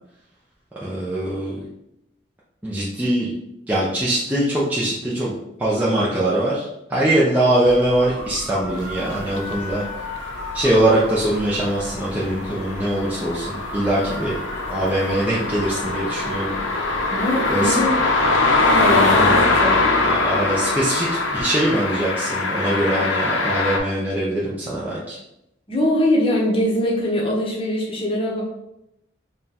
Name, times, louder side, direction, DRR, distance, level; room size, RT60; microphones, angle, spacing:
voice 1, 0.8-1.6 2.6-3.3 3.7-5.3 5.6-9.8 10.5-14.4 14.7-16.6 17.5-17.7 20.0-25.2, right 1 dB, 10° right, -8 dB, 0.5 m, -22 dB
sound 1, 7.6-18.9, left 1 dB, 60° right, 1.0 m, -36 dB
sound 2, 9.1-23.8, left 3 dB, 90° left, 0.6 m, -22 dB
voice 2, 17.1-18.0 18.7-19.8 25.7-28.4, left 1 dB, 30° left, -2 dB, 0.8 m, -22 dB
3.7 x 2.3 x 4.1 m, 0.84 s
head